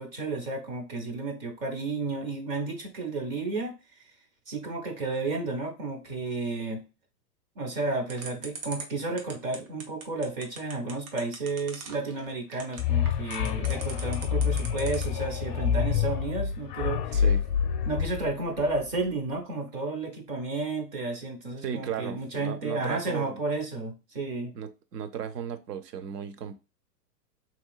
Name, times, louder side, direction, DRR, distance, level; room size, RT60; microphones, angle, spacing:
voice 1, 0.0-3.8 4.5-6.9 7.6-17.2 17.9-24.5, right 3 dB, 25° right, 2 dB, 0.5 m, -32 dB
sound 1, 8.1-15.2, right 4 dB, 60° right, 1.1 m, -40 dB
sound 2, 12.8-19.0, left 8 dB, 35° left, 0.4 m, -27 dB
voice 2, 17.1-17.5 21.6-23.4 24.5-26.6, right 8 dB, 75° right, 9 dB, 0.7 m, -35 dB
3.2 x 2.9 x 2.3 m, 0.29 s
hypercardioid pair, 125°, 48 cm